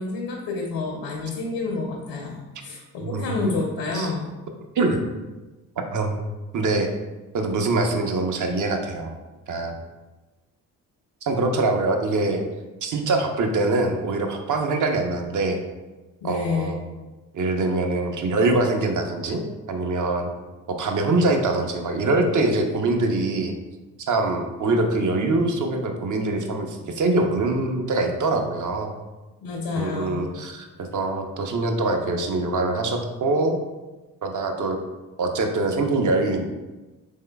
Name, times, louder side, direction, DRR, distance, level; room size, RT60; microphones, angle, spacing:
voice 1, 0.0-4.3 16.2-16.8 29.4-30.3, left 3 dB, 75° left, -1 dB, 0.7 m, -29 dB
voice 2, 3.0-3.5 3.9-4.1 4.7-5.0 5.9-6.2 6.5-6.9 7.3-9.1 9.5-9.7 11.2-12.4 12.8-15.6 16.2-16.8 17.3-20.3 20.7-23.5 24.0-29.0 29.7-33.6 34.2-34.8 35.2-36.4, right 2 dB, 45° right, 4 dB, 0.6 m, -24 dB
3.6 x 3.3 x 2.2 m, 1.1 s
supercardioid pair, 50°, 43 cm